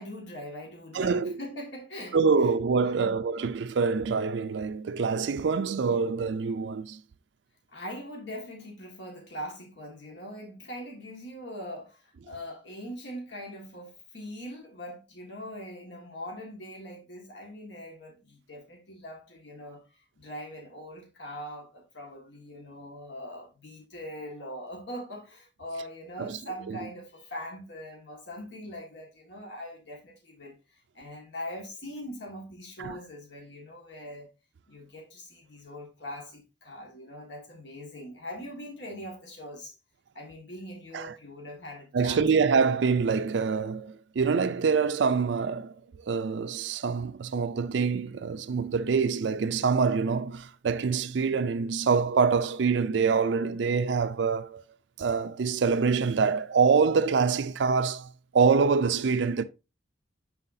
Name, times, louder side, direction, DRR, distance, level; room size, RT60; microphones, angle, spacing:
voice 1, 0.0-2.5 3.0-3.2 7.7-19.8 20.2-34.3 34.7-39.8 40.1-42.3, equal, 75° left, 1.8 m, -42 dB
voice 2, 0.9-1.4 2.1-7.0 26.2-26.4 26.7-26.8 32.8-33.0 40.9-41.1 41.9-45.7 46.1-54.6 55.0-59.4, right 5 dB, 80° right, 0.4 m, -25 dB
7.0 x 5.6 x 2.7 m
head